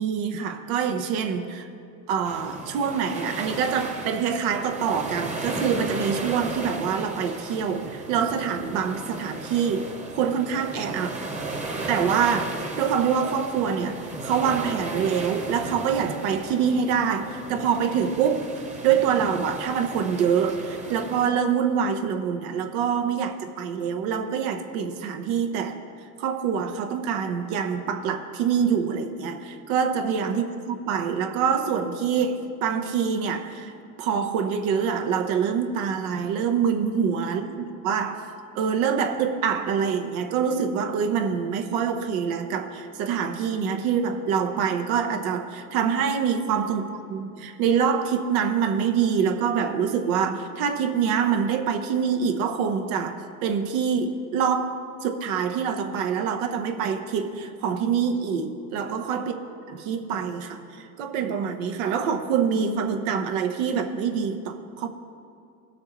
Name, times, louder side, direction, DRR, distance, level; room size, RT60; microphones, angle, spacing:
voice 1, 0.0-1.7 2.1-11.2 11.9-18.4 18.8-25.8 26.2-33.7 34.0-54.7 55.0-59.4 59.7-64.9, right 7 dB, 75° right, 6 dB, 1.0 m, -25 dB
sound 1, 2.2-21.3, right 2 dB, 15° right, 1.1 m, -35 dB
sound 2, 2.9-3.3 4.9-5.4 7.0-7.4 9.0-9.5 11.0-11.5, left 6 dB, 80° left, 1.0 m, -49 dB
17.0 x 6.4 x 3.1 m, 2.4 s
supercardioid pair, 105°, 42 cm